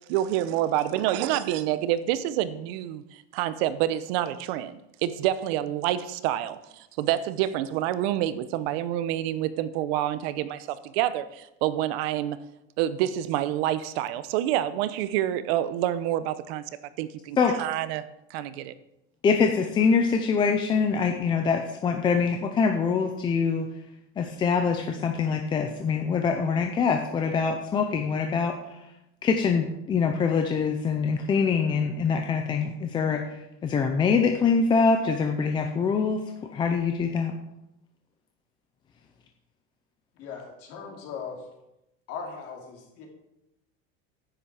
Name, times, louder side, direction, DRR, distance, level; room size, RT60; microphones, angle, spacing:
voice 1, 0.1-12.4 12.8-16.6 17.0-18.7, right 12 dB, 75° right, 14 dB, 0.8 m, -28 dB
voice 2, 19.2-23.7 24.2-28.6 29.2-33.2 33.6-36.2 36.5-37.3, left 5 dB, 15° left, 4 dB, 0.4 m, -24 dB
voice 3, 40.2-41.4 42.1-43.1, left 6 dB, 50° left, 1 dB, 2.7 m, -38 dB
10.0 x 8.8 x 4.8 m, 0.88 s
cardioid pair, 180°, 32 cm